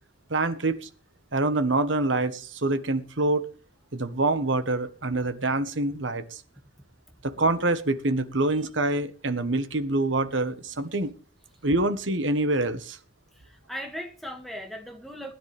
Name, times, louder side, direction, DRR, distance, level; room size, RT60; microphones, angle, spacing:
voice 1, 0.3-0.9 1.3-3.5 3.9-6.4 7.2-11.1 11.6-13.0, right 2 dB, 85° right, 11 dB, 1.4 m, -26 dB
voice 2, 13.3-15.3, equal, ahead, 2 dB, 2.1 m, -38 dB
20.0 x 10.5 x 3.5 m, 0.36 s
head